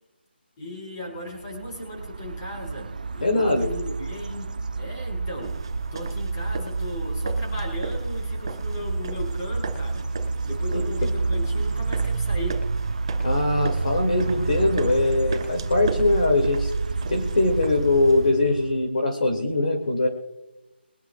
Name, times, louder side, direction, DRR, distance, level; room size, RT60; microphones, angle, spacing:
voice 1, 0.6-5.6 5.9-10.1 10.4-12.6, left 1 dB, 15° left, -1 dB, 4.7 m, -37 dB
sound 1, 1.3-18.9, right 3 dB, 45° right, 0.8 m, -29 dB
voice 2, 3.2-3.7 10.7-10.8 13.2-16.7 17.1-20.1, left 2 dB, 45° left, 2 dB, 2.5 m, -22 dB
sound 2, 5.4-18.3, right 4 dB, 25° right, 4.1 m, -37 dB
23.5 x 11.0 x 2.4 m, 1.0 s
figure-of-eight pair, 175°, 6 cm